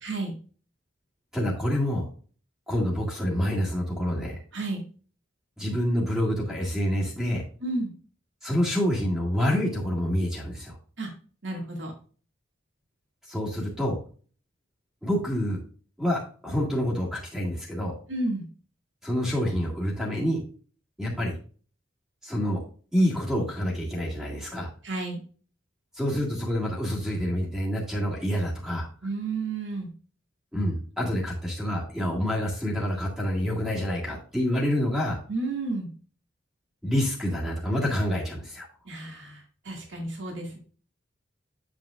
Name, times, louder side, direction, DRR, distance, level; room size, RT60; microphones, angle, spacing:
voice 1, 0.0-0.4 4.5-4.8 7.6-7.9 11.0-11.1 11.4-11.9 18.1-18.4 24.8-25.2 29.0-29.9 35.3-35.9 38.8-40.6, right 2 dB, 70° right, 1 dB, 2.0 m, -31 dB
voice 2, 1.3-2.0 2.7-4.3 5.6-7.4 8.4-10.8 13.3-14.0 15.0-15.6 16.0-17.9 19.0-20.4 21.0-21.3 22.2-22.6 22.9-24.7 25.9-28.9 30.5-35.2 36.8-38.7, equal, 5° right, -3 dB, 1.8 m, -27 dB
7.8 x 7.2 x 2.4 m, 0.40 s
head